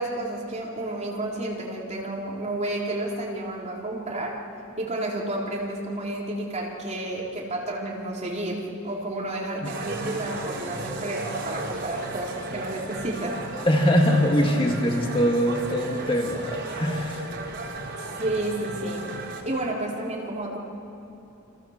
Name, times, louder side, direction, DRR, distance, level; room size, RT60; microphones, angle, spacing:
voice 1, 0.0-4.4 4.8-13.4 18.2-19.1 19.5-20.6, right 1 dB, 30° right, -3 dB, 4.1 m, -31 dB
sound 1, 9.6-19.4, right 2 dB, 55° right, 3.9 m, -35 dB
voice 2, 13.6-17.3, equal, 25° left, 1 dB, 2.2 m, -22 dB
29.5 x 26.5 x 7.5 m, 2.8 s
head